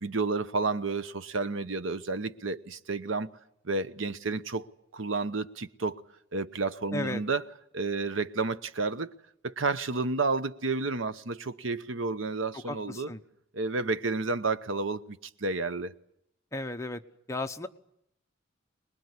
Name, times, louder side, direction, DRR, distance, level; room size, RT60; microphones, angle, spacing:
voice 1, 0.0-3.3 3.6-4.7 4.9-6.0 6.3-7.4 7.7-9.1 9.4-13.1 13.5-15.9, right 3 dB, 80° right, 1.0 m, -31 dB
voice 2, 6.9-7.2 12.5-13.2 16.5-17.0 17.3-17.7, left 2 dB, 15° left, 1.0 m, -34 dB
25.0 x 21.0 x 9.7 m
head